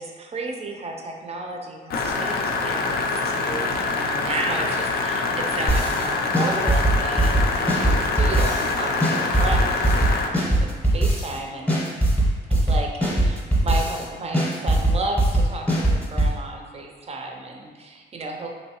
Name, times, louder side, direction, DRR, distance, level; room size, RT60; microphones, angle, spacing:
voice 1, 0.0-11.8 12.5-18.5, right 2 dB, 30° right, 2 dB, 0.5 m, -33 dB
sound 1, 1.9-10.3, left 3 dB, 50° left, 0.4 m, -25 dB
sound 2, 5.7-6.0 6.3-8.7 9.0-11.4 11.7-14.0 14.3-16.3, right 1 dB, 5° left, 0.8 m, -20 dB
3.2 x 2.7 x 2.8 m, 1.5 s
cardioid pair, 90°, 20 cm